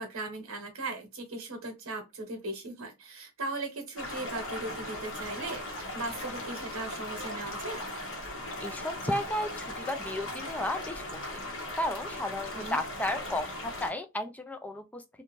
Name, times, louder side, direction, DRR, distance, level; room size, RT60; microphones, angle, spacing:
voice 1, 0.0-7.8 12.5-12.8, right 2 dB, 80° right, 0.9 m, -38 dB
sound 1, 4.0-13.9, left 1 dB, 60° left, 1.0 m, -38 dB
voice 2, 8.6-11.4 11.7-15.0, left 1 dB, 5° left, 0.3 m, -34 dB
2.5 x 2.2 x 3.0 m
head